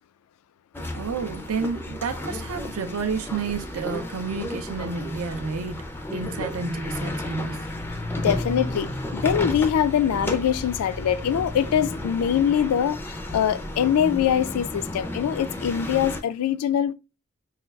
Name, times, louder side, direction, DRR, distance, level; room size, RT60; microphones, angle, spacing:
sound 1, 0.7-16.2, left 1 dB, 10° left, 0.3 m, -33 dB
voice 1, 0.9-5.8 6.1-7.6, right 5 dB, 75° right, 0.5 m, -30 dB
voice 2, 8.2-13.0 13.3-16.9, left 9 dB, 90° left, 0.3 m, -23 dB
5.5 x 2.3 x 2.2 m
head